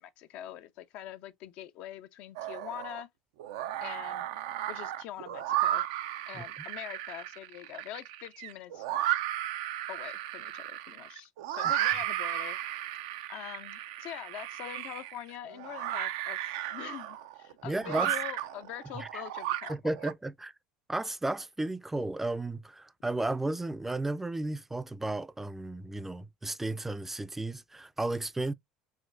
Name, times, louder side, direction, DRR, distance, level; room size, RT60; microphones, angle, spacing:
voice 1, 0.0-3.1 3.8-4.3 4.7-5.8 6.3-8.8 9.9-12.6 13.3-16.4 16.7-19.8, left 12 dB, 65° left, 0.5 m, -44 dB
sound 1, 2.4-3.0 3.4-20.1, right 13 dB, 80° right, 0.5 m, -34 dB
voice 2, 17.6-18.1 18.9-19.2 19.7-20.5 20.9-28.5, right 2 dB, 10° right, 0.4 m, -34 dB
4.9 x 3.6 x 2.5 m
hypercardioid pair, 80°, 2 cm